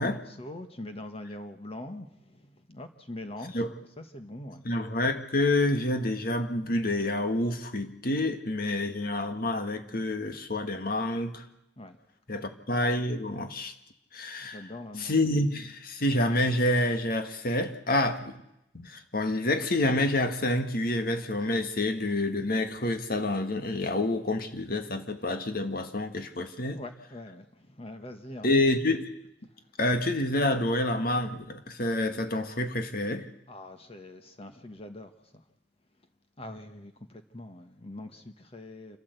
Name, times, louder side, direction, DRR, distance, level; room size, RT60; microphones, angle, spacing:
voice 1, 0.0-3.6 4.0-4.6 11.8-12.0 12.3-12.6 14.4-15.2 26.8-28.5 33.5-35.4 36.4-39.0, left 1 dB, 35° left, 1.5 m, -43 dB
voice 2, 4.7-11.5 12.3-13.7 14.1-14.6 15.0-18.4 18.7-26.8 28.4-29.1 29.8-33.3, left 1 dB, 55° left, 2.0 m, -28 dB
28.0 x 13.5 x 8.2 m
head